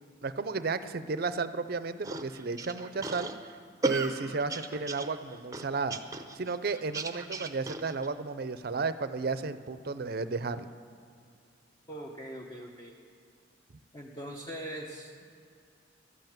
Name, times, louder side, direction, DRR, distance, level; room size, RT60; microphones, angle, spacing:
voice 1, 0.2-3.3 3.8-6.0 6.3-10.7, right 4 dB, 55° right, 12 dB, 0.6 m, -33 dB
sound 1, 2.0-8.1, right 3 dB, 20° right, 0.7 m, -36 dB
voice 2, 11.9-12.9 13.9-15.2, right 1 dB, 20° left, -1 dB, 0.9 m, -41 dB
12.5 x 7.9 x 9.1 m, 2.4 s
head